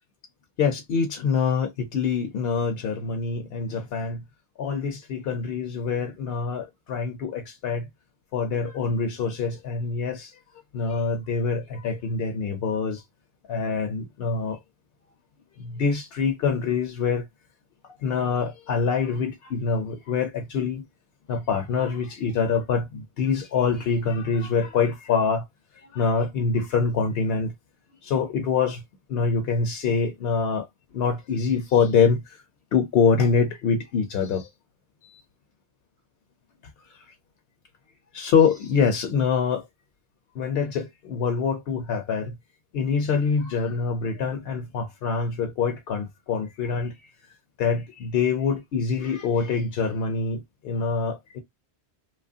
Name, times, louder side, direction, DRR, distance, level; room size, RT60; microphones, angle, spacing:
voice 1, 0.6-4.2 4.6-7.8 8.3-10.3 10.7-13.0 13.5-14.6 15.6-17.2 18.0-20.8 21.3-25.4 25.9-27.5 28.0-28.8 29.1-30.7 30.9-32.2 32.7-34.5 35.0-35.2 38.1-39.6 40.4-42.3 42.7-46.9 47.6-51.4, left 5 dB, 65° left, 0.8 m, -25 dB
2.9 x 2.3 x 2.4 m
omnidirectional pair, 1.1 m